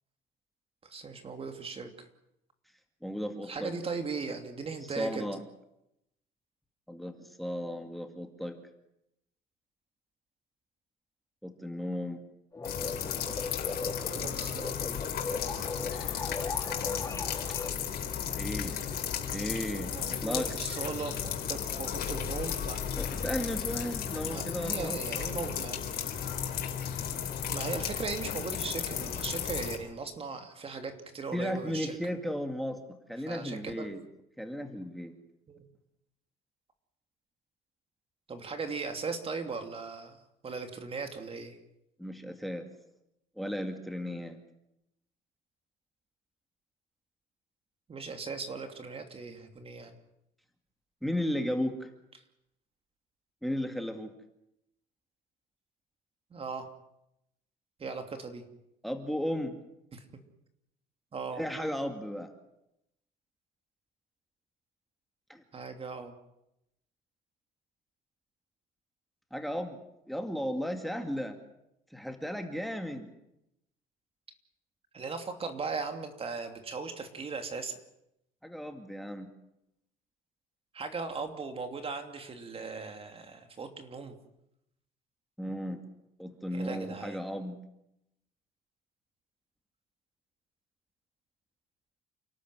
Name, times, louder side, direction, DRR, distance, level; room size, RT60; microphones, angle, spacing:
voice 1, 0.8-2.1 3.5-5.3 13.9-14.9 19.9-22.8 24.3-25.8 27.5-32.0 33.3-33.9 35.5-35.7 38.3-41.6 47.9-50.0 56.3-56.7 57.8-58.4 59.9-60.0 61.1-61.4 65.5-66.1 74.9-77.7 80.7-84.1 86.5-87.2, right 4 dB, 35° right, 6 dB, 2.9 m, -38 dB
voice 2, 3.0-3.7 5.0-5.4 6.9-8.6 11.4-12.2 15.9-16.3 18.4-18.8 19.3-20.5 23.0-25.1 31.3-34.0 34.4-35.2 42.0-42.7 43.4-44.4 51.0-51.9 53.4-54.1 58.8-59.6 61.3-62.3 65.3-65.4 69.3-69.8 70.1-71.4 71.9-73.1 78.4-79.3 85.4-85.8 86.2-87.6, equal, ahead, 6 dB, 2.2 m, -35 dB
sound 1, 12.5-17.7, left 3 dB, 20° left, 3.0 m, -38 dB
sound 2, 12.6-29.8, left 8 dB, 65° left, 4.4 m, -34 dB
28.5 x 13.0 x 9.6 m, 0.84 s
cardioid pair, 110°, 17 cm